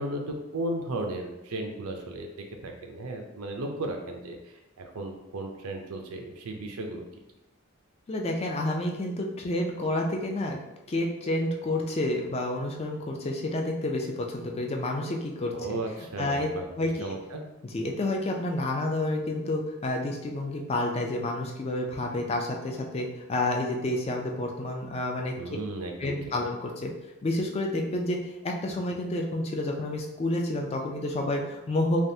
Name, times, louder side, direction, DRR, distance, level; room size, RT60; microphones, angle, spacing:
voice 1, 0.0-7.1 15.5-16.6 17.0-17.4 25.4-26.3, right 2 dB, 85° right, 3 dB, 0.5 m, -35 dB
voice 2, 8.1-10.6 10.9-15.5 16.2-16.5 16.8-17.1 17.7-25.3 26.0-26.9 27.2-32.1, left 1 dB, 30° left, 1 dB, 0.3 m, -29 dB
3.3 x 2.4 x 2.7 m, 0.96 s
head